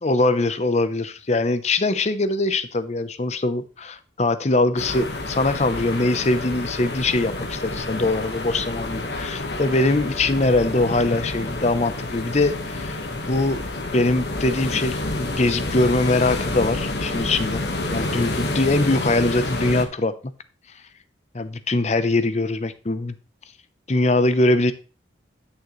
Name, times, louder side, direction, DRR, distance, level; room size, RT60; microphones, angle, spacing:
voice 1, 0.0-13.0 13.3-13.7 13.9-17.6 17.9-20.1 21.3-23.2 23.9-24.7, left 2 dB, 35° left, 12 dB, 0.7 m, -22 dB
sound 1, 4.8-19.8, left 2 dB, 60° left, 1.4 m, -29 dB
11.0 x 6.6 x 3.1 m, 0.35 s
head